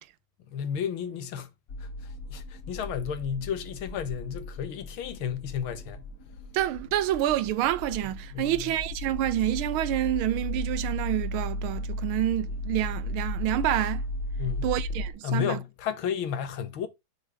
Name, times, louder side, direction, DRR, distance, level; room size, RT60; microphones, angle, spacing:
voice 1, 0.5-1.5 1.8-1.9 2.3-6.1 8.3-8.7 14.4-14.7 15.2-16.9, left 8 dB, 75° left, 1.9 m, -32 dB
sound 1, 1.7-15.1, left 1 dB, 55° left, 1.7 m, -35 dB
voice 2, 6.5-14.0 14.6-15.6, right 13 dB, 85° right, 1.6 m, -28 dB
6.2 x 4.9 x 4.7 m
omnidirectional pair, 2.3 m